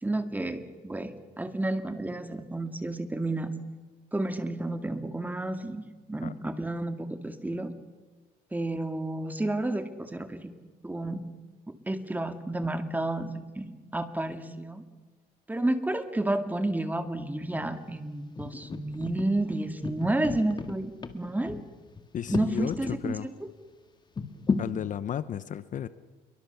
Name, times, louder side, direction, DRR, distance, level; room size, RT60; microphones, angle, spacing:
voice 1, 0.0-3.5 4.1-7.7 8.5-10.5 10.8-11.2 11.7-14.8 15.5-21.6 22.3-23.3, right 2 dB, 10° right, 8 dB, 2.0 m, -31 dB
sound 1, 17.5-17.9 18.4-23.0 23.4-23.5 24.2-24.7, left 4 dB, 25° left, 2.0 m, -34 dB
voice 2, 22.1-23.3 24.6-25.9, left 9 dB, 50° left, 14 dB, 0.9 m, -34 dB
27.0 x 23.0 x 7.1 m, 1.3 s
cardioid pair, 110°, 17 cm